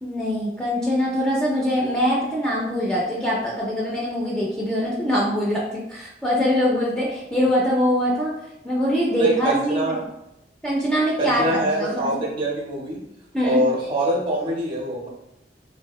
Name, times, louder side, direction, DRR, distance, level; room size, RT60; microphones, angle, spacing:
voice 1, 0.0-8.3 8.6-10.0 10.6-12.2 13.3-13.6, equal, 5° left, -5 dB, 0.3 m, -23 dB
voice 2, 9.2-10.0 11.2-13.0 13.4-15.1, right 1 dB, 30° right, -2 dB, 0.7 m, -24 dB
2.6 x 2.1 x 2.2 m, 0.84 s
head